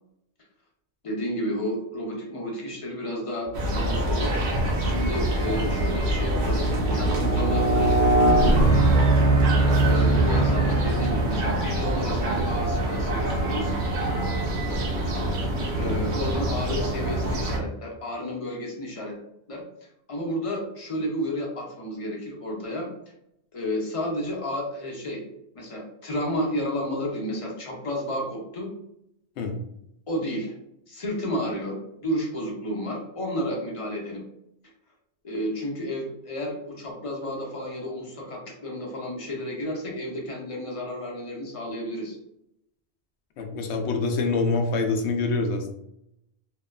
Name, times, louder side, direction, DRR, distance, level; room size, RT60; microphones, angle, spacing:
voice 1, 1.0-8.0 9.7-13.7 15.7-19.2 19.5-19.6 20.1-22.9 23.5-25.2 25.5-28.7 30.1-30.6 30.9-34.2 35.2-42.2, equal, 35° left, -2 dB, 0.7 m, -31 dB
sound 1, 3.5-17.6, right 1 dB, 80° right, 1.0 m, -26 dB
sound 2, 4.9-11.7, right 2 dB, 45° right, 0.6 m, -22 dB
voice 2, 8.5-8.9 15.9-16.1 29.4-29.6 43.4-45.7, left 3 dB, 85° left, 4 dB, 0.9 m, -26 dB
2.8 x 2.3 x 2.2 m, 0.77 s
omnidirectional pair, 1.1 m